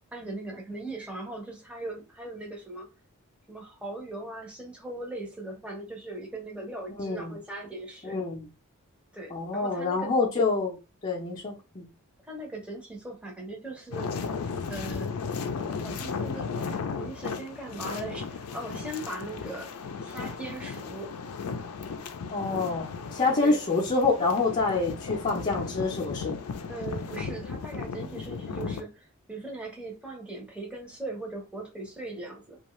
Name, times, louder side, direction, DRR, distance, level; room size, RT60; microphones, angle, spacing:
voice 1, 0.1-2.9 3.5-8.2 9.1-10.1 12.3-14.1 14.7-15.1 15.8-19.7 20.0-21.1 23.4-23.6 26.7-32.6, right 2 dB, 5° right, 0.8 m, -39 dB
voice 2, 7.0-7.4 8.0-8.5 9.3-10.8 11.0-11.8 22.3-26.4, left 3 dB, 30° left, 0.6 m, -27 dB
sound 1, 13.9-28.8, left 5 dB, 75° left, 0.4 m, -35 dB
2.6 x 2.3 x 3.0 m
head